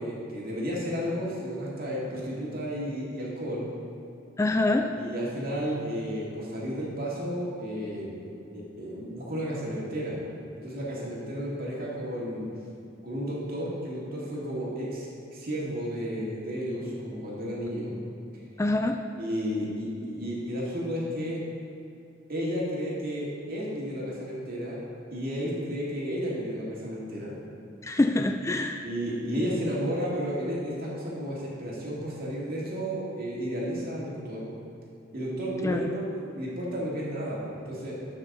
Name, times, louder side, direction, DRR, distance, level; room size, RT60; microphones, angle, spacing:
voice 1, 0.0-3.7 4.9-10.2 10.6-12.5 13.0-17.9 19.2-21.4 22.3-24.8 25.1-27.3 28.8-34.5 35.1-36.1 36.3-38.0, equal, 50° right, -5 dB, 2.3 m, -32 dB
voice 2, 4.4-4.9 18.6-19.0 27.8-28.9 35.6-35.9, left 2 dB, 15° left, 5 dB, 0.3 m, -25 dB
12.5 x 6.0 x 3.9 m, 2.6 s
head